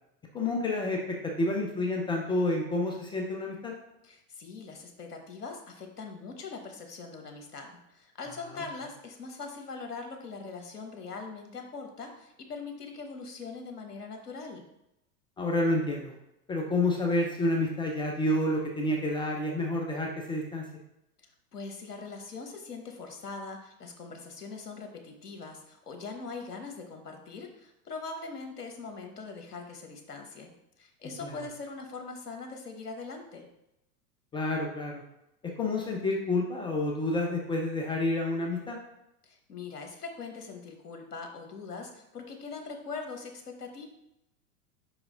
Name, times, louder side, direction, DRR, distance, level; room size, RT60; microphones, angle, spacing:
voice 1, 0.3-3.7 8.5-8.6 15.4-16.1 16.5-20.7 31.2-31.5 34.3-35.0 35.4-38.8, left 2 dB, 10° left, 0 dB, 0.4 m, -29 dB
voice 2, 4.0-14.6 21.5-30.5 30.8-33.5 39.2-43.8, left 4 dB, 80° left, 4 dB, 1.1 m, -42 dB
5.1 x 4.8 x 3.8 m, 0.86 s
figure-of-eight pair, 100°, 47 cm